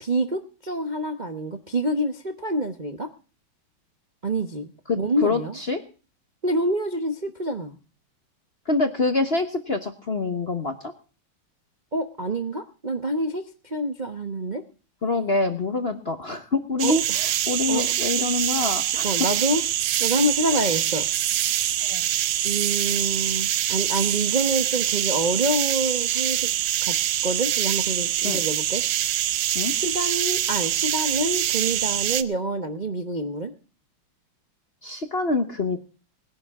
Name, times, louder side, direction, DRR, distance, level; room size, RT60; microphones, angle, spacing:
voice 1, 0.0-3.1 4.2-5.6 6.4-7.7 11.9-14.6 16.8-16.9 17.7-17.8 19.0-19.6 20.0-21.1 22.4-26.5 26.8-26.9 27.2-28.8 29.7-33.5, right 1 dB, 35° right, 6 dB, 0.8 m, -27 dB
voice 2, 4.9-5.8 8.7-10.9 15.0-19.1 21.9-22.0 28.2-28.4 29.5-29.7 34.8-35.8, left 3 dB, 35° left, 8 dB, 1.0 m, -26 dB
sound 1, 16.8-32.2, right 12 dB, 80° right, 1.8 m, -25 dB
20.5 x 11.0 x 3.6 m, 0.36 s
omnidirectional pair, 2.4 m